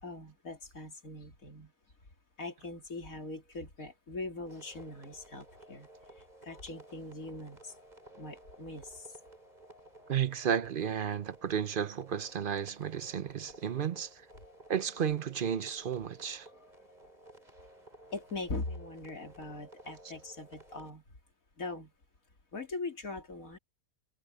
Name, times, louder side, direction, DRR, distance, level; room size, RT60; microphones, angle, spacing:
voice 1, 0.0-1.7 2.4-5.9 6.4-7.8 8.2-9.2 18.1-21.0 21.6-21.9 22.5-23.6, left 3 dB, 75° left, 3.3 m, -41 dB
sound 1, 4.5-20.9, right 1 dB, 30° right, 3.7 m, -56 dB
voice 2, 10.1-14.2 14.7-16.5, right 8 dB, 50° right, 0.7 m, -33 dB
omnidirectional pair, 1.5 m